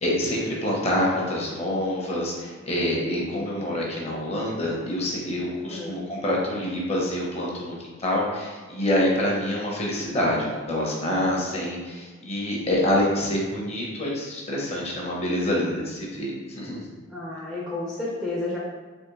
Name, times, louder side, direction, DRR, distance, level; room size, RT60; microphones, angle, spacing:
voice 1, 0.0-16.9, left 1 dB, 30° left, -3 dB, 0.7 m, -26 dB
voice 2, 5.7-6.0 17.1-18.6, left 2 dB, 5° left, -7 dB, 0.5 m, -31 dB
3.5 x 2.9 x 3.0 m, 1.4 s
head